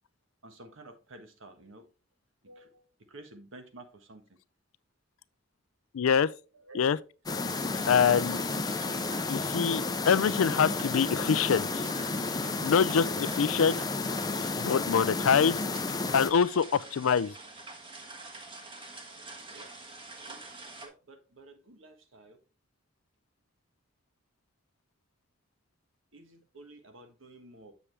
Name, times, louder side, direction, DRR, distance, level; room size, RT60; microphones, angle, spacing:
voice 1, 0.4-1.9 2.4-4.2 6.5-6.9 15.3-15.4 19.5-19.7 20.3-20.4 20.8-22.4 26.1-27.7, right 2 dB, 70° right, 1.4 m, -51 dB
voice 2, 5.9-6.3 6.7-7.0 7.9-8.4 9.3-11.9 12.6-13.8 14.6-15.6 16.1-17.3, left 6 dB, 85° left, 0.4 m, -25 dB
sound 1, 7.3-16.3, left 3 dB, 20° left, 0.5 m, -32 dB
sound 2, 7.5-20.9, right 2 dB, 25° right, 1.3 m, -46 dB
7.2 x 7.0 x 3.2 m
head